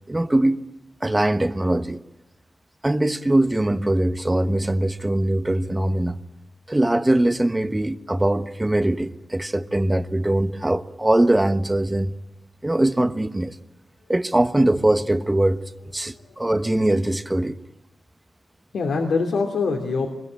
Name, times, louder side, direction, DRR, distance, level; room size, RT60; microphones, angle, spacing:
voice 1, 0.1-0.6 1.0-2.0 2.8-6.2 6.7-12.1 12.6-13.5 14.1-15.6 15.9-17.6, right 1 dB, 15° right, 1.2 m, -21 dB
voice 2, 16.0-16.4 18.7-20.1, left 4 dB, 85° left, 2.9 m, -24 dB
24.0 x 21.5 x 8.9 m
cardioid pair, 80°, 0 cm